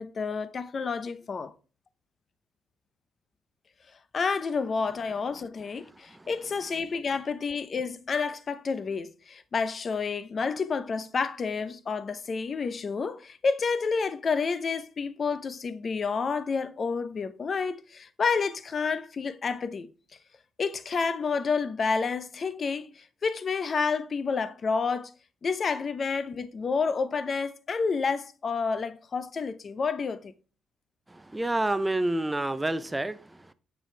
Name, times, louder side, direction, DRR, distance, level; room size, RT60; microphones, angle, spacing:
voice 1, 0.0-1.5 4.1-19.9 20.6-25.1 25.4-30.3, left 5 dB, 45° left, 0.6 m, -29 dB
voice 2, 31.1-33.5, right 1 dB, 15° right, 0.5 m, -29 dB
7.0 x 6.2 x 3.2 m
cardioid pair, 90°, 0 cm